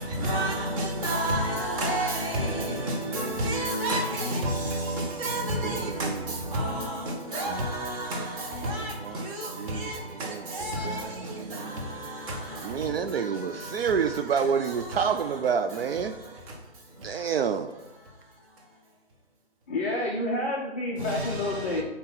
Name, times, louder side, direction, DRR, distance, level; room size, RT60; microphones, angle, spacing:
voice 1, 0.2-4.9 5.2-6.1 6.5-6.9 7.3-8.2 8.6-8.9 9.8-9.9 10.5-11.0, right 1 dB, 30° right, 1.4 m, -28 dB
voice 2, 5.6-6.2 9.0-11.9 12.6-16.2 17.0-17.7, right 7 dB, 65° right, 0.5 m, -29 dB
voice 3, 19.7-21.8, left 1 dB, 15° left, 0.4 m, -29 dB
7.5 x 2.9 x 5.5 m
figure-of-eight pair, 135°, 32 cm